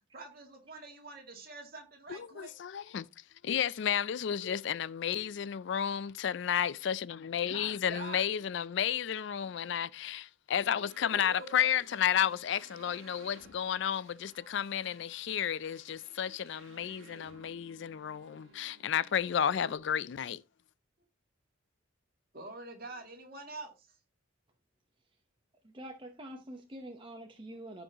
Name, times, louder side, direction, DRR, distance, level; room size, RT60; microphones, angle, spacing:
voice 1, 0.1-2.5 7.5-8.2 11.1-11.7 22.3-24.0 27.7-27.8, right 2 dB, 45° right, 2.3 m, -46 dB
voice 2, 2.1-3.1 3.4-20.4, left 9 dB, 60° left, 0.3 m, -32 dB
sound 1, 10.5-19.8, right 3 dB, 80° right, 1.8 m, -58 dB
voice 3, 25.7-27.8, right 1 dB, 25° right, 0.8 m, -45 dB
15.0 x 5.2 x 2.9 m
head